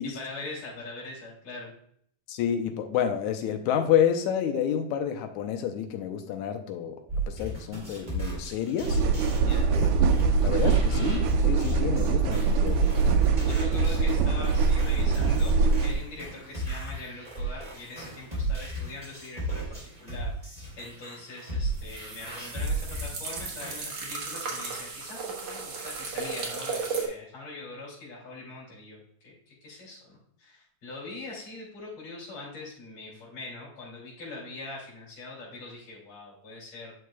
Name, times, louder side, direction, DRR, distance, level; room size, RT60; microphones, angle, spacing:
voice 1, 0.1-1.7 9.4-9.7 13.5-19.7 20.0-36.9, left 2 dB, 50° left, -7 dB, 3.5 m, -42 dB
voice 2, 2.3-9.0 9.7-9.9 10.2-13.4, left 9 dB, 75° left, 6 dB, 1.9 m, -29 dB
sound 1, 7.1-23.8, right 2 dB, 15° right, 3.0 m, -34 dB
sound 2, 8.9-15.9, right 5 dB, 80° right, 1.9 m, -23 dB
sound 3, 21.7-27.1, right 4 dB, 60° right, 2.3 m, -35 dB
9.8 x 6.2 x 2.2 m, 0.63 s
omnidirectional pair, 3.7 m